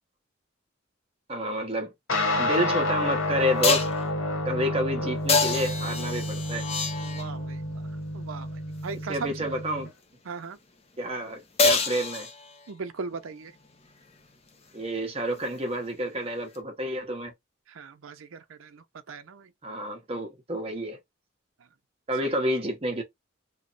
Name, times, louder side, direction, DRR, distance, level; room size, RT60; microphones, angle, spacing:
voice 1, 1.3-1.9 2.4-3.9 4.4-6.7 9.1-9.9 11.0-12.3 14.7-17.3 19.6-21.0 22.1-23.0, equal, 30° right, 0.8 m, -29 dB
sound 1, 2.1-9.9, left 1 dB, 85° left, 1.1 m, -30 dB
sound 2, 2.5-2.6 3.6-4.0 5.3-7.4 11.6-12.7 16.5-16.6, left 4 dB, 30° left, 0.5 m, -26 dB
voice 2, 7.0-7.8 8.1-9.5 10.2-10.6 12.7-13.5 17.7-19.5 22.2-22.4, right 5 dB, 80° right, 0.5 m, -39 dB
3.1 x 2.0 x 3.8 m
head